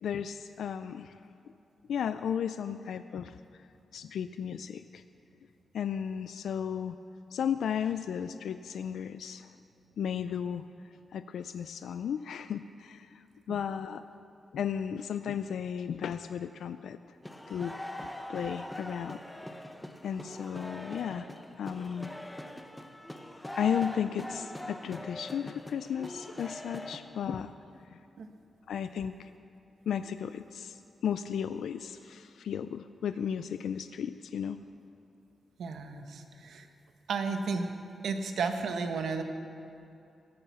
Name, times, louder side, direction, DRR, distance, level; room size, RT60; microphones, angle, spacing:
voice 1, 0.0-1.2 1.9-3.4 3.9-5.0 5.7-7.0 7.3-9.5 10.0-10.6 11.1-14.0 14.5-17.0 17.5-17.7 18.0-19.2 20.0-21.3 21.6-22.1 23.5-27.5 27.9-28.0 28.7-29.3 29.9-30.8 31.0-34.6, left 8 dB, 85° left, 11 dB, 0.3 m, -34 dB
sound 1, 17.2-27.0, left 1 dB, 5° left, 0.7 m, -42 dB
voice 2, 35.6-36.7 37.1-37.7 38.0-39.2, right 4 dB, 70° right, 6 dB, 1.0 m, -33 dB
16.5 x 8.8 x 7.0 m, 2.6 s
wide cardioid pair, 160°, 0 cm